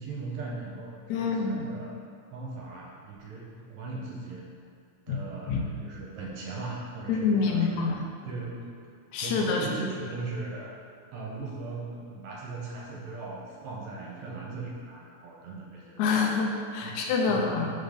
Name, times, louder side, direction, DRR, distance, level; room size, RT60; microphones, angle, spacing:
voice 1, 0.0-1.9 2.3-4.4 5.1-7.9 8.2-8.7 9.2-10.7 11.1-16.1 16.8-17.0 17.3-17.7, right 3 dB, 75° right, -3 dB, 2.1 m, -38 dB
voice 2, 1.1-1.7 5.1-5.2 5.5-5.6 7.1-8.1 9.1-9.7 16.0-17.7, left 5 dB, 80° left, 0 dB, 2.0 m, -26 dB
5.2 x 3.9 x 5.1 m, 2.3 s
omnidirectional pair, 3.4 m